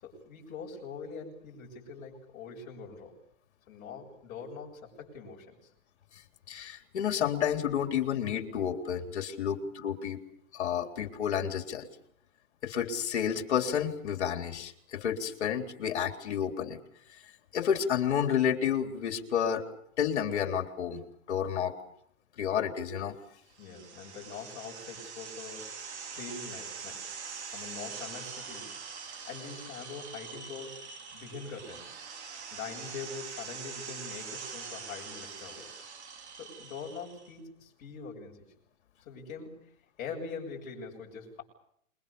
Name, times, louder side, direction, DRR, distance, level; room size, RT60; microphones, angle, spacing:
voice 1, 0.0-3.2 3.7-5.7 9.5-9.7 23.6-27.1 27.4-28.7 29.2-30.8 31.1-31.9 32.5-35.7 36.4-38.5 39.1-39.7 40.0-41.4, left 5 dB, 20° left, -3 dB, 7.3 m, -43 dB
voice 2, 6.5-10.2 10.5-11.9 12.6-16.8 17.5-19.7 20.0-21.0 21.3-21.8 22.4-23.1, left 8 dB, 55° left, 7 dB, 3.7 m, -30 dB
sound 1, 23.6-37.3, right 6 dB, 55° right, 4.2 m, -43 dB
27.5 x 23.0 x 7.0 m, 0.69 s
hypercardioid pair, 170°, 41 cm